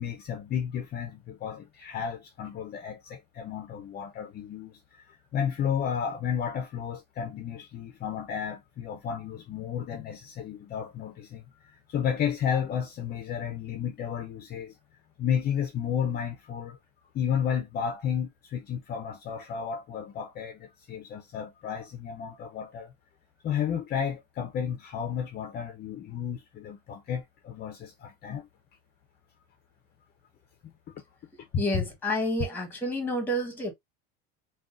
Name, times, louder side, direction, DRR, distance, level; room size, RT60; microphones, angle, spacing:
voice 1, 0.0-14.7 15.2-16.8 17.1-22.9 23.4-28.5 30.6-31.0 31.5-31.8, left 8 dB, 35° left, 0.6 m, -32 dB
voice 2, 31.6-33.7, left 1 dB, 5° left, 1.2 m, -29 dB
3.7 x 2.3 x 2.4 m
supercardioid pair, 130°, 29 cm